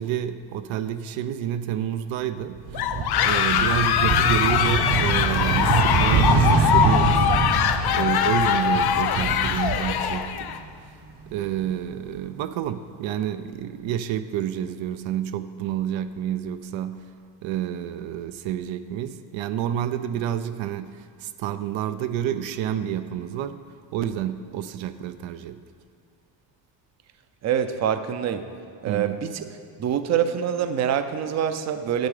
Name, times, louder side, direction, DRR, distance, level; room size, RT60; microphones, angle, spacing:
voice 1, 0.0-2.9 3.2-7.3 7.9-10.6 11.3-17.1 17.4-23.6 23.9-25.6 28.9-29.2, right 10 dB, 80° right, 11 dB, 0.6 m, -29 dB
sound 1, 2.5-10.7 11.0-12.2, right 4 dB, 60° right, 1.0 m, -25 dB
sound 2, 2.7-10.6, left 9 dB, 55° left, 0.6 m, -22 dB
voice 2, 27.4-28.4 28.8-29.4 29.8-32.1, right 9 dB, 40° right, 9 dB, 0.5 m, -25 dB
10.5 x 7.7 x 4.9 m, 2.4 s
cardioid pair, 140°, 45 cm